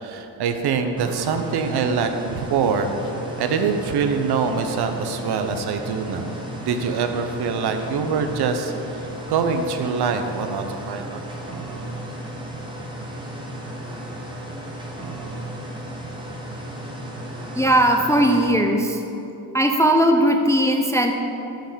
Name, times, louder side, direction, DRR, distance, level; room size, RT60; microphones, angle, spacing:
voice 1, 0.0-2.9 3.4-6.3 6.6-8.7 9.3-11.2, right 5 dB, 60° right, 6 dB, 0.8 m, -24 dB
sound 1, 1.0-18.5, right 1 dB, 10° right, 1.4 m, -34 dB
voice 2, 17.6-19.0 19.5-21.1, right 1 dB, 5° left, 2 dB, 0.4 m, -18 dB
7.6 x 5.6 x 5.1 m, 2.9 s
cardioid pair, 90°, 45 cm